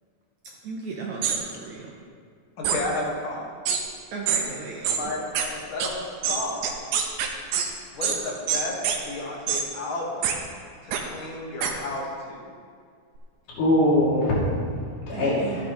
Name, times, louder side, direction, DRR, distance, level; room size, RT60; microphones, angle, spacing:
voice 1, 0.6-1.9 4.1-5.0 7.5-7.7 15.1-15.6, right 4 dB, 70° right, -1 dB, 1.9 m, -35 dB
sound 1, 1.2-1.4 2.6-2.8 3.7-3.8 4.3-4.4 4.8-5.0 5.4-5.5 5.8-5.9 6.2-7.7 8.0-8.2 8.5-9.0 9.5-9.6 10.2-10.4 10.9-11.0 11.6-11.7, right 7 dB, 90° right, 2.7 m, -24 dB
voice 2, 2.6-3.5 5.0-5.2 5.5-6.7 7.9-10.5 10.8-12.4, left 2 dB, 50° left, -2 dB, 1.8 m, -32 dB
voice 3, 13.6-15.7, left 1 dB, 80° left, -7 dB, 4.4 m, -23 dB
13.5 x 11.0 x 3.1 m, 2.1 s
omnidirectional pair, 4.2 m